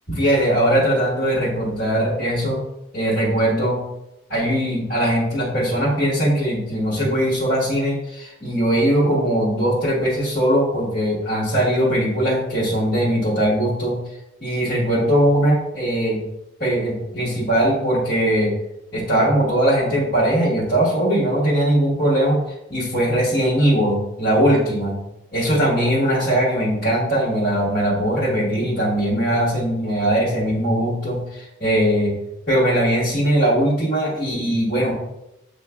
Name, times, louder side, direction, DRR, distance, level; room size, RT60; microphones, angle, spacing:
voice 1, 0.1-2.6 2.9-3.8 4.3-14.0 14.4-16.2 16.6-18.5 18.9-22.4 22.7-25.0 25.3-32.1 32.5-34.9, right 1 dB, 45° left, -10 dB, 1.7 m, -20 dB
7.8 x 3.0 x 2.3 m, 0.87 s
head